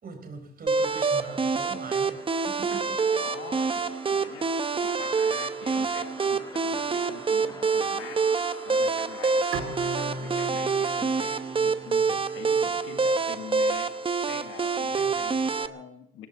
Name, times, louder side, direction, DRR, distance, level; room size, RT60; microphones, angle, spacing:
voice 1, 0.0-3.1 4.3-4.5 15.0-15.2, right 3 dB, 50° right, 5 dB, 4.6 m, -42 dB
sound 1, 0.7-15.7, left 2 dB, 20° left, 1.9 m, -48 dB
sound 2, 0.7-15.7, right 4 dB, 25° right, 0.8 m, -26 dB
voice 2, 3.1-8.3 8.6-9.5 9.8-14.0 14.3-16.3, left 9 dB, 85° left, 7 dB, 1.7 m, -44 dB
Bowed string instrument, 9.5-12.7, right 2 dB, 90° right, 3.2 m, -38 dB
19.0 x 17.5 x 4.2 m, 0.75 s
cardioid pair, 90°, 20 cm